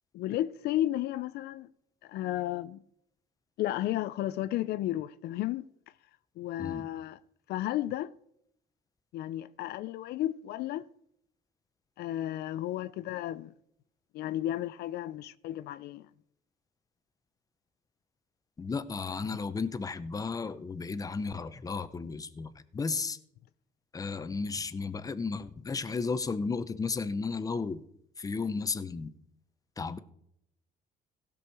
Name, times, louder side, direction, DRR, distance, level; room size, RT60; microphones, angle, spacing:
voice 1, 0.1-1.7 2.0-2.8 3.6-5.7 6.4-7.2 7.5-8.1 9.1-10.8 12.0-13.5 14.1-16.1, left 13 dB, 75° left, 0.4 m, -33 dB
voice 2, 18.6-23.2 23.9-27.8 28.2-29.1 29.8-30.0, left 4 dB, 20° left, 0.7 m, -34 dB
16.0 x 6.3 x 4.7 m
cardioid pair, 110°, 17 cm